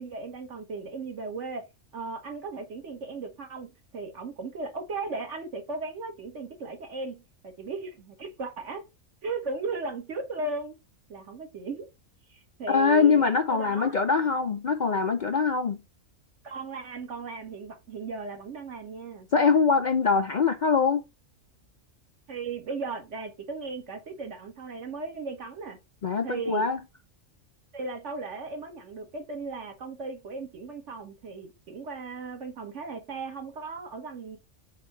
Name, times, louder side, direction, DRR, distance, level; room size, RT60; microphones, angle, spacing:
voice 1, 0.0-1.7 1.9-8.8 9.2-10.7 11.1-11.9 12.3-13.2 13.5-13.9 16.4-19.3 22.3-25.8 26.2-26.7 27.7-34.4, right 3 dB, 60° right, 1.6 m, -36 dB
voice 2, 12.7-15.8 19.3-21.0 26.0-26.8, left 5 dB, 60° left, 0.5 m, -23 dB
7.6 x 2.9 x 4.4 m
omnidirectional pair, 1.4 m